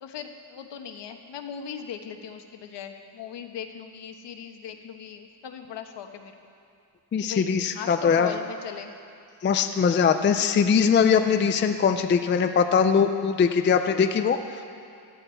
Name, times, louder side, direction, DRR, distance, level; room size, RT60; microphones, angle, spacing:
voice 1, 0.0-6.3 7.2-7.5 7.7-8.9, left 8 dB, 65° left, 5 dB, 1.2 m, -38 dB
voice 2, 7.1-8.3 9.4-14.4, left 6 dB, 25° left, 7 dB, 0.4 m, -21 dB
17.0 x 13.0 x 4.5 m, 2.4 s
cardioid pair, 155°, 46 cm